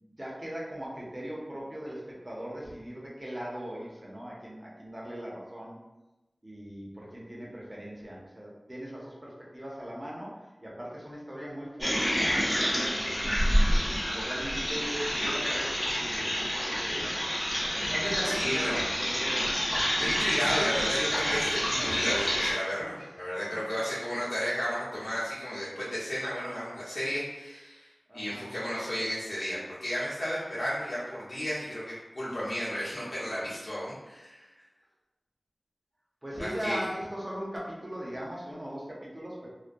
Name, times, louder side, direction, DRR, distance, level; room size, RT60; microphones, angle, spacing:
voice 1, 0.0-5.8 6.4-13.0 14.1-17.2 17.9-19.6 22.8-23.1 23.5-23.6 28.1-28.5 36.2-39.5, equal, 30° right, -5 dB, 0.7 m, -39 dB
sound 1, 11.8-22.5, equal, 20° left, 0.7 m, -28 dB
voice 2, 18.2-18.7 20.0-34.5 36.4-36.8, equal, 80° left, -9 dB, 1.0 m, -33 dB
2.2 x 2.2 x 2.6 m, 1.0 s
wide cardioid pair, 55°, 0 cm